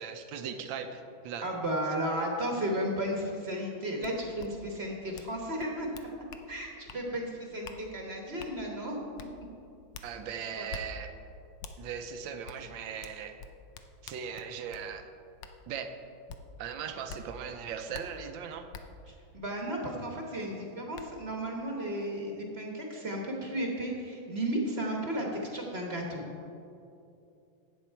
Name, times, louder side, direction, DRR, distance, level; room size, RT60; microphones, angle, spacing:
voice 1, 0.0-1.5 10.0-11.2 11.8-13.4 14.0-15.1 15.7-15.9 16.6-18.7, right 7 dB, 70° right, 7 dB, 1.4 m, -39 dB
voice 2, 1.4-5.9 6.5-9.0 10.6-10.7 19.1-26.2, right 1 dB, 35° right, 0 dB, 1.2 m, -34 dB
sound 1, 4.0-4.1 4.4-4.5 5.1-5.3 5.6-6.5 6.9-7.0 7.6-7.8 8.4-8.5 9.2-9.3 9.9-10.1 10.7-10.8 11.6-11.8 12.5-12.6 13.0-14.9 15.4-15.5 16.3-16.4 17.1-17.2 17.9-18.0 18.7-18.8 20.3-20.4 20.9-21.1, left 5 dB, 70° left, 1.3 m, -44 dB
11.5 x 8.4 x 4.5 m, 2.6 s
omnidirectional pair, 2.3 m